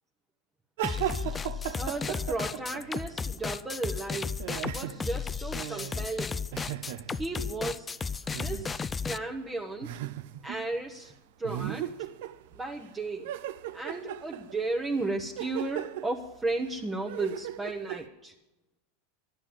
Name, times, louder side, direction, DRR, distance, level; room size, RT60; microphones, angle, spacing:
sound 1, 0.8-9.2, left 5 dB, 20° left, 0.4 m, -34 dB
sound 2, 0.8-3.4 3.7-7.5 8.3-8.8 9.2-9.3 9.8-10.7 11.0-11.1 11.4-12.9 13.2-18.1, right 12 dB, 70° right, 0.6 m, -38 dB
voice 1, 1.7-4.3 4.7-6.4 7.1-7.9 8.3-9.9 10.4-11.1 11.4-11.9 12.6-13.3 13.7-18.3, right 2 dB, 15° right, 2 dB, 1.0 m, -34 dB
11.0 x 10.0 x 7.6 m, 0.98 s
supercardioid pair, 115°, 0 cm